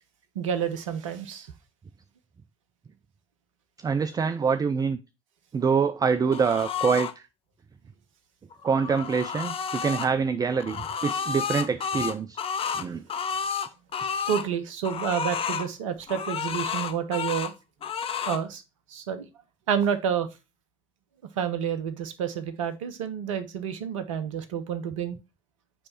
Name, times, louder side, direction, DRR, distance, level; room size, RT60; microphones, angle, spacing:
voice 1, 0.4-1.5 14.3-17.5 18.3-18.6 18.9-19.3 19.7-20.3 21.4-25.2, right 8 dB, 75° right, 10 dB, 0.8 m, -29 dB
voice 2, 3.8-5.0 5.5-7.2 8.6-12.4 12.7-13.0, right 5 dB, 20° right, 11 dB, 0.4 m, -25 dB
sound 1, 6.3-7.1 8.5-10.1 10.6-14.5 14.8-15.7 16.1-17.5 17.8-18.4, left 7 dB, 35° left, 0.6 m, -31 dB
8.8 x 3.2 x 4.2 m, 0.26 s
figure-of-eight pair, 55°, 17 cm